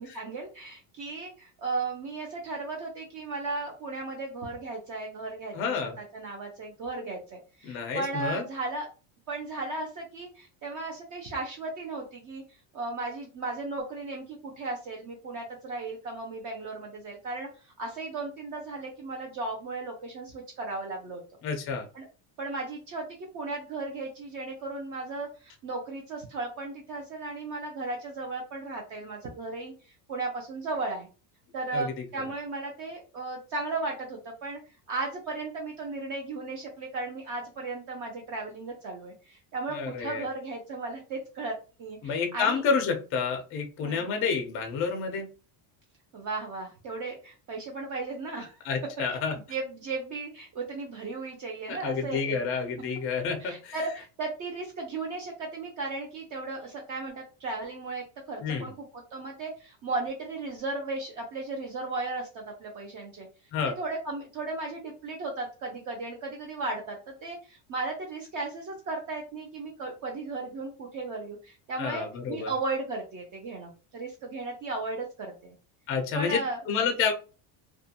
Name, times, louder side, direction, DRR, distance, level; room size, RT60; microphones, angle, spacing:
voice 1, 0.0-8.9 9.3-12.4 12.7-21.2 21.9-22.0 22.4-23.0 23.3-31.1 31.5-34.6 34.9-41.5 41.8-42.6 43.8-44.2 46.1-48.7 49.1-49.2 49.5-52.4 53.4-63.3 63.8-75.6 76.1-76.6, right 3 dB, 40° right, 0 dB, 0.5 m, -35 dB
voice 2, 5.5-6.0 7.6-8.4 21.4-21.9 31.7-32.0 39.7-40.3 42.0-45.3 48.7-49.3 51.7-53.8 58.4-58.7 63.5-63.8 71.8-72.5 75.9-77.1, left 5 dB, 30° left, 3 dB, 0.4 m, -29 dB
2.4 x 2.2 x 2.7 m, 0.34 s
cardioid pair, 160°, 48 cm